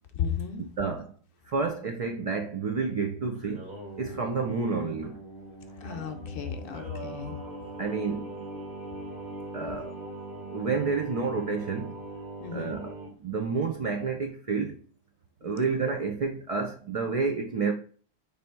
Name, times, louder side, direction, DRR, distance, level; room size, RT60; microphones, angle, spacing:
voice 1, 0.1-0.6 5.8-7.4 12.4-12.8 15.4-15.6, left 7 dB, 65° left, 0.7 m, -34 dB
voice 2, 0.8-1.1 1.5-3.7 4.0-5.2 7.8-8.3 9.5-9.9 10.5-12.0 12.5-12.9 13.2-14.8 15.4-17.7, right 4 dB, 65° right, 0.3 m, -29 dB
Singing, 3.3-13.1, right 2 dB, 50° right, 1.8 m, -41 dB
3.4 x 2.6 x 4.5 m
omnidirectional pair, 1.1 m